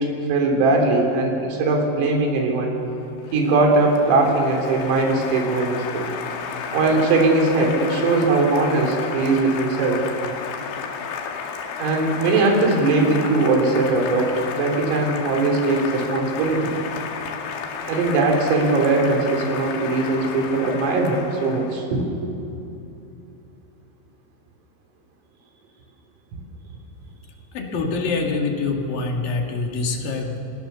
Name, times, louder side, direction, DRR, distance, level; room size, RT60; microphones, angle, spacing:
voice 1, 0.0-2.8 3.3-6.1 6.7-10.0 11.8-16.7 17.9-22.3, right 3 dB, 85° right, 2 dB, 6.2 m, -20 dB
Applause, 2.9-21.8, left 6 dB, 85° left, 4.6 m, -32 dB
voice 2, 27.5-30.4, left 3 dB, 55° left, 1 dB, 3.3 m, -25 dB
29.0 x 22.5 x 7.0 m, 2.8 s
omnidirectional pair, 5.8 m